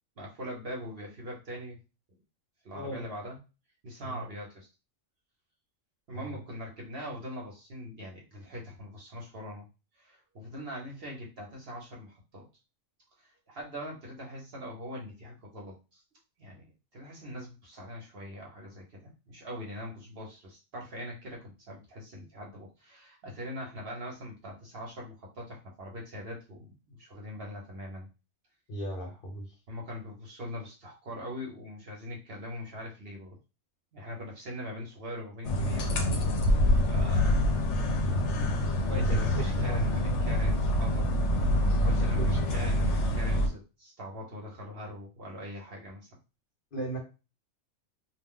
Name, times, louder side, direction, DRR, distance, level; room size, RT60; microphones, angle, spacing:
voice 1, 0.2-1.8 2.6-3.4 3.8-4.7 6.1-9.7 10.0-12.5 13.2-16.0 16.4-16.6 16.9-28.1 29.7-33.4 33.9-35.9 36.2-36.6 36.9-37.6 38.9-41.1 41.5-46.2, equal, 50° right, -2 dB, 1.1 m, -42 dB
voice 2, 2.7-3.0 4.0-4.2 6.1-6.4 28.7-29.5 38.9-39.9 41.7-42.3 46.7-47.0, right 1 dB, 45° left, -1 dB, 1.1 m, -36 dB
sound 1, 35.4-43.5, left 1 dB, 70° left, 0.9 m, -26 dB
2.5 x 2.1 x 3.6 m, 0.29 s
omnidirectional pair, 1.3 m